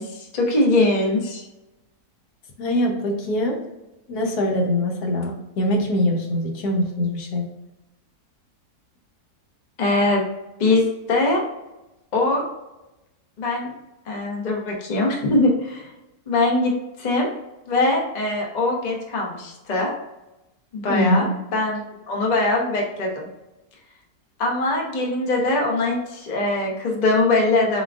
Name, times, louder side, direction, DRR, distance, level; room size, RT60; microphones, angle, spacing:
voice 1, 0.0-1.4 9.8-10.2 10.6-11.4 12.1-12.4 13.4-13.7 14.1-15.9 16.3-16.7 17.0-17.3 17.7-19.9 20.7-21.3 21.5-23.3 24.4-27.8, left 2 dB, 35° left, -1 dB, 0.7 m, -22 dB
voice 2, 2.6-3.6 4.1-7.4 20.9-21.3, left 1 dB, 75° left, 1 dB, 1.2 m, -23 dB
4.3 x 3.6 x 2.4 m, 0.96 s
omnidirectional pair, 1.7 m